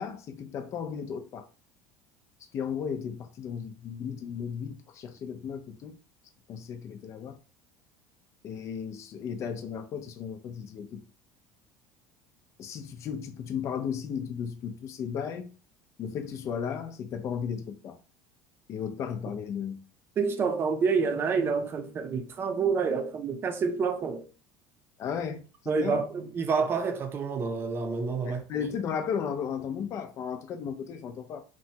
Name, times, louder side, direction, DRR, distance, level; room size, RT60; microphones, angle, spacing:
voice 1, 0.0-1.4 2.5-6.0 6.5-7.4 8.4-11.0 12.6-15.5 16.0-18.0 18.7-19.8 25.0-26.0 28.2-31.4, left 7 dB, 45° left, 0.5 m, -35 dB
voice 2, 20.2-24.2 25.7-28.4, right 5 dB, 35° right, 0.5 m, -28 dB
3.0 x 2.2 x 2.8 m
supercardioid pair, 120°, 7 cm